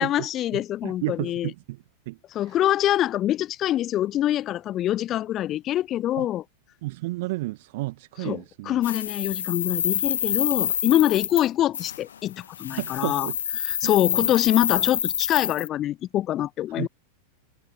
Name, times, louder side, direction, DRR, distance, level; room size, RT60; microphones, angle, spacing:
voice 1, 0.0-1.5 2.3-6.4 8.2-13.3 13.6-16.9, left 12 dB, 30° left, 0.4 m, -25 dB
voice 2, 0.5-2.2 2.5-2.6 6.2-6.3 6.8-8.8 12.7-13.4 13.8-13.9 14.2-14.3 16.8-16.9, right 20 dB, 50° right, 1.4 m, -32 dB
sound 1, 8.8-11.5 11.7-12.0 12.5-15.7, left 9 dB, 65° left, 1.5 m, -27 dB
figure-of-eight pair, 90°, 0 cm